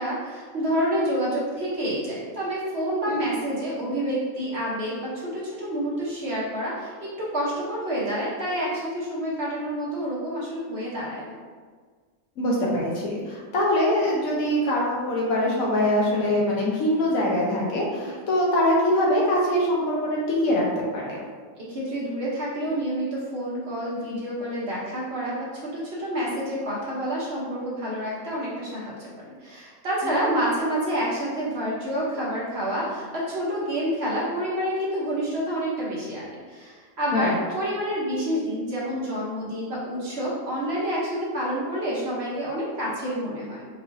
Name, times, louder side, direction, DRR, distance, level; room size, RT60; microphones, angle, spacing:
voice 1, 0.0-11.4 18.0-18.2 21.6-29.1 29.4-43.7, equal, 50° right, -6 dB, 1.1 m, -28 dB
voice 2, 3.1-3.4 12.4-21.2 30.0-30.2 37.1-37.4, left 1 dB, 75° left, -3 dB, 1.3 m, -23 dB
4.7 x 2.7 x 2.6 m, 1.5 s
omnidirectional pair, 1.5 m